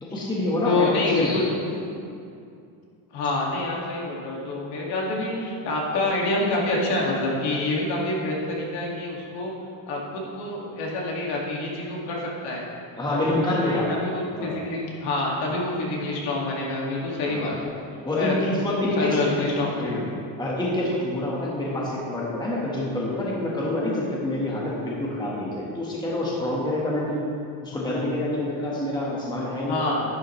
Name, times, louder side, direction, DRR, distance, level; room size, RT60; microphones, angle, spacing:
voice 1, 0.0-1.9 13.0-13.9 14.3-14.6 17.2-17.5 18.0-20.1 20.4-27.3 27.6-29.8, left 1 dB, 10° left, -5 dB, 1.4 m, -27 dB
voice 2, 0.6-1.5 3.1-9.5 9.9-12.7 13.1-17.8 18.2-18.6 19.0-20.0 29.7-30.0, left 2 dB, 60° left, -3 dB, 2.2 m, -27 dB
11.5 x 10.0 x 3.2 m, 2.5 s
cardioid pair, 160°, 44 cm